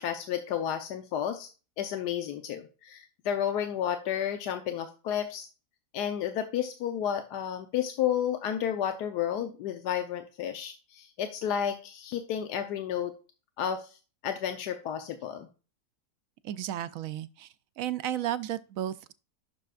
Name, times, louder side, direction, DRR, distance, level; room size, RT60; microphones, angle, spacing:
voice 1, 0.0-1.5 1.8-5.5 5.9-13.1 13.6-14.0 14.2-15.5, left 9 dB, 90° left, 1.3 m, -31 dB
voice 2, 16.4-17.5 17.8-19.1, right 11 dB, 70° right, 0.9 m, -33 dB
11.0 x 6.2 x 2.4 m
omnidirectional pair, 1.7 m